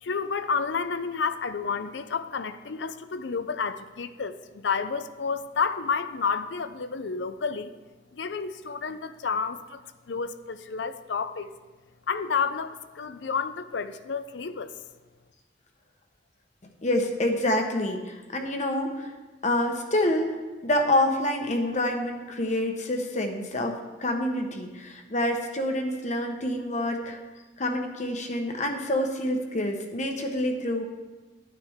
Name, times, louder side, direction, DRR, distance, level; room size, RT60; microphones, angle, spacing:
voice 1, 0.0-7.7 8.1-9.8 10.1-11.5 12.1-14.7, left 5 dB, 80° left, 12 dB, 0.5 m, -30 dB
voice 2, 16.8-19.1 19.4-20.4 20.6-27.2 27.6-30.9, left 1 dB, 40° left, 4 dB, 1.1 m, -27 dB
11.5 x 9.4 x 3.6 m, 1.2 s
head